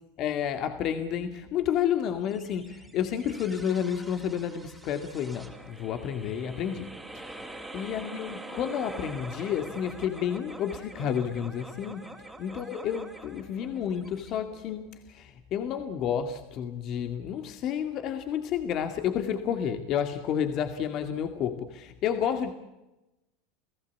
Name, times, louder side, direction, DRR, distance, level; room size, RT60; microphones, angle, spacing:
voice 1, 0.2-7.4 7.7-12.1 12.4-22.5, left 8 dB, 45° left, 8 dB, 2.2 m, -30 dB
sound 1, 2.3-14.9, right 2 dB, 5° right, 3.5 m, -45 dB
30.0 x 16.5 x 8.5 m, 0.97 s
supercardioid pair, 120°, 0 cm